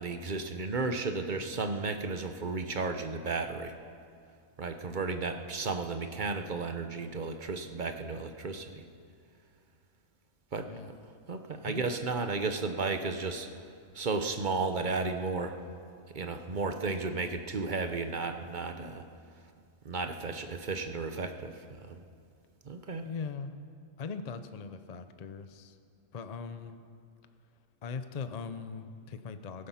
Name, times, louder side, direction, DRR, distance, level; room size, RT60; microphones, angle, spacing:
voice 1, 0.0-3.7 4.6-8.8 10.5-10.7 11.3-13.5 13.9-15.5 16.1-19.0 19.8-21.5 21.8-22.0 22.7-23.1, right 3 dB, 40° right, 7 dB, 0.9 m, -33 dB
voice 2, 10.7-11.0 11.6-11.9 23.0-23.5 24.0-25.8 26.1-26.8 27.8-29.7, left 5 dB, 40° left, 9 dB, 0.6 m, -40 dB
16.5 x 15.0 x 5.7 m, 2.3 s
omnidirectional pair, 1.4 m